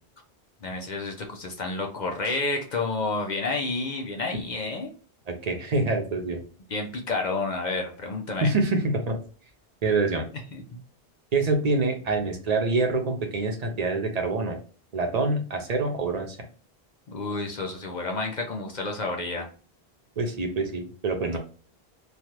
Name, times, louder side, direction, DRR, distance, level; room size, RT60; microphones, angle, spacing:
voice 1, 0.6-4.9 6.7-8.5 10.5-10.6 17.1-19.5 21.3-21.4, left 3 dB, 50° left, 2 dB, 0.7 m, -30 dB
voice 2, 5.3-6.4 8.4-9.2 9.8-10.3 11.3-14.6 14.9-16.4 20.2-21.4, right 3 dB, 45° right, 4 dB, 0.7 m, -26 dB
3.2 x 2.3 x 2.8 m, 0.39 s
omnidirectional pair, 1.1 m